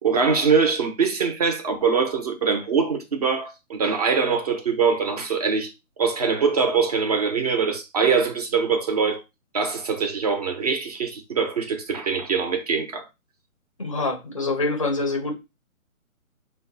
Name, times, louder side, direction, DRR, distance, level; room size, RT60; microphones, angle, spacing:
voice 1, 0.0-5.7 6.0-9.2 9.5-13.1, right 5 dB, 30° right, 0.6 m, -23 dB
voice 2, 13.8-15.3, left 3 dB, 25° left, 0.5 m, -25 dB
5.5 x 2.2 x 4.0 m
figure-of-eight pair, 145°, 42 cm